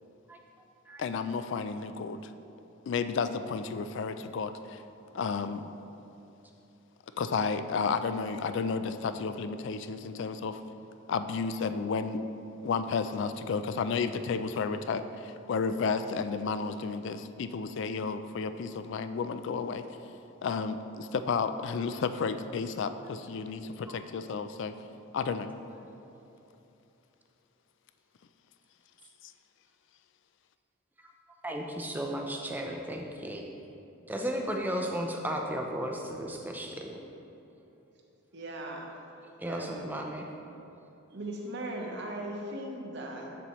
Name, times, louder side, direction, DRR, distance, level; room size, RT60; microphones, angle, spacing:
voice 1, 1.0-2.2 2.9-4.8 5.1-5.7 7.2-10.6 11.1-12.2 12.6-19.8 20.4-24.7 25.1-25.5 29.2-29.3, left 5 dB, 55° left, 10 dB, 0.3 m, -32 dB
voice 2, 31.4-33.5 34.1-37.0 39.4-40.3, equal, 10° right, 1 dB, 0.5 m, -34 dB
voice 3, 38.3-38.9 39.4-40.0 41.1-43.3, right 1 dB, 55° right, 0 dB, 0.9 m, -38 dB
7.6 x 6.9 x 3.0 m, 3.0 s
head